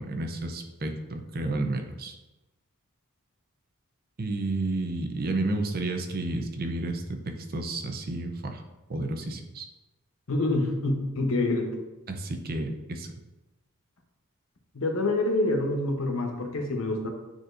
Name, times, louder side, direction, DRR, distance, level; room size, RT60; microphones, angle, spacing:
voice 1, 0.0-2.1 4.2-8.6 8.9-9.7 12.1-13.1, right 2 dB, 45° right, 4 dB, 0.6 m, -31 dB
voice 2, 10.3-11.7 14.7-17.1, left 2 dB, 70° left, 3 dB, 1.0 m, -26 dB
9.0 x 4.2 x 2.6 m, 1.1 s
head